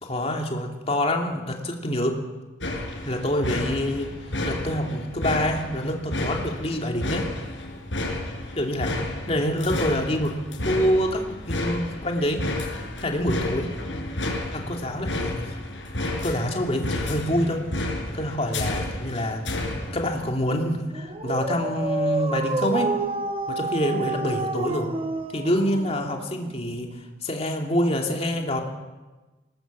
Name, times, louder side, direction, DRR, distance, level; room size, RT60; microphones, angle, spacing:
voice 1, 0.0-2.2 3.0-4.1 4.4-7.3 8.6-8.9 9.3-10.4 10.6-12.4 13.0-13.7 14.5-15.6 16.2-17.6 18.1-19.5 19.9-22.9 23.5-24.9 25.3-26.9 27.2-28.6, equal, 35° left, 2 dB, 2.7 m, -26 dB
sound 1, 2.6-20.3, left 1 dB, 80° left, 4.6 m, -31 dB
Dog, 20.9-26.6, right 2 dB, 30° right, 1.1 m, -29 dB
20.5 x 19.0 x 7.5 m, 1.2 s
head